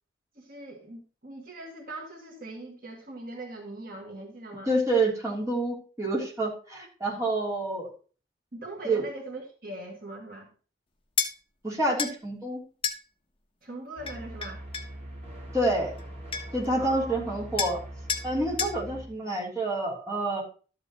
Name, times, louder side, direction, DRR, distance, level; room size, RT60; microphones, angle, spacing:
voice 1, 0.4-4.7 8.5-10.5 13.6-14.6 16.7-17.2, right 1 dB, 55° right, -1 dB, 1.8 m, -41 dB
voice 2, 4.7-7.9 8.8-9.0 11.6-12.6 15.5-15.9 16.5-17.8 18.2-20.4, right 2 dB, 20° right, -4 dB, 3.3 m, -28 dB
sound 1, 11.2-11.3 12.0-12.2 12.8-13.0 14.1-14.9 16.0-16.1 16.3-16.7 17.6-17.8 18.1-18.3 18.6-18.8, left 6 dB, 30° left, 1.1 m, -30 dB
sound 2, 14.0-19.1, right 1 dB, 40° right, 5.3 m, -42 dB
12.5 x 8.2 x 3.0 m, 0.38 s
head